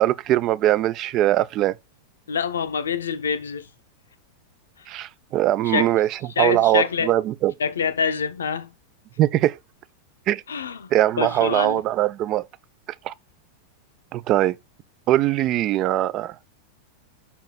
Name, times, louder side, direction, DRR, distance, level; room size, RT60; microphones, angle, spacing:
voice 1, 0.0-1.8 4.9-7.5 9.2-9.6 10.3-10.4 10.9-12.4 13.0-13.1 14.1-14.6 15.1-16.4, right 14 dB, 35° right, 0.4 m, -21 dB
voice 2, 2.3-3.7 5.7-5.9 6.4-7.1 7.6-8.7 10.5-10.9 11.2-11.8, left 6 dB, 70° left, 0.6 m, -25 dB
5.5 x 4.3 x 5.7 m
figure-of-eight pair, 90°, 0 cm